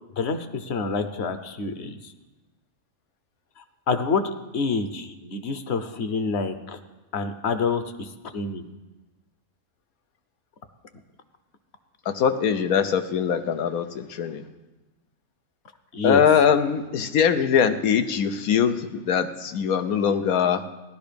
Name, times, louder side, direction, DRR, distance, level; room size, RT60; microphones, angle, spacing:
voice 1, 0.2-2.1 3.6-4.2 4.5-6.8 7.1-8.6 15.9-16.2, left 4 dB, 55° left, 9 dB, 1.1 m, -27 dB
voice 2, 12.1-14.5 16.0-20.6, left 7 dB, 90° left, 9 dB, 1.3 m, -22 dB
16.0 x 11.5 x 5.2 m, 1.1 s
omnidirectional pair, 1.5 m